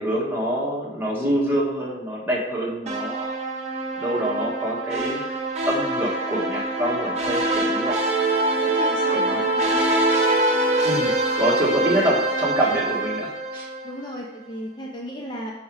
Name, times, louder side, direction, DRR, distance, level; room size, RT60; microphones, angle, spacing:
voice 1, 0.0-3.3 3.9-5.4 5.6-7.9 9.2-9.4 10.8-13.7, right 1 dB, 10° right, -5 dB, 1.6 m, -26 dB
sound 1, 2.9-14.1, right 2 dB, 35° right, 1.0 m, -24 dB
voice 2, 7.3-7.7 8.5-9.9 11.9-12.1 13.8-15.5, equal, 25° left, -1 dB, 0.6 m, -35 dB
5.3 x 4.9 x 4.7 m, 1.0 s
head